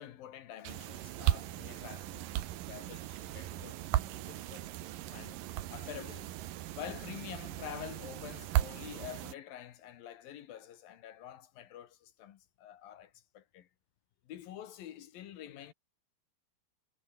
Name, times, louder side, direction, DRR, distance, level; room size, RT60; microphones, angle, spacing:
voice 1, 0.0-4.7 5.1-5.4 5.7-6.4 6.7-13.7 14.3-15.7, left 11 dB, 60° left, 2.8 m, -48 dB
sound 1, 0.6-9.3, right 14 dB, 70° right, 2.2 m, -36 dB
omnidirectional pair, 5.3 m